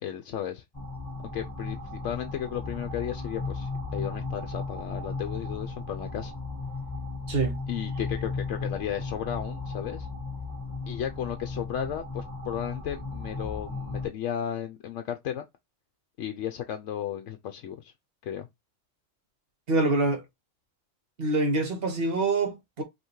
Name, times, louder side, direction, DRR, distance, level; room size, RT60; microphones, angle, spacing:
voice 1, 0.0-0.6 1.2-6.3 7.7-10.1 10.9-15.4 16.2-17.9 18.2-18.5, left 10 dB, 70° left, 0.9 m, -34 dB
sound 1, 0.7-14.1, left 3 dB, 20° left, 1.4 m, -35 dB
voice 2, 7.3-7.6 19.7-20.2 21.2-22.8, right 2 dB, 50° right, 1.3 m, -25 dB
5.5 x 2.9 x 3.1 m
omnidirectional pair, 1.4 m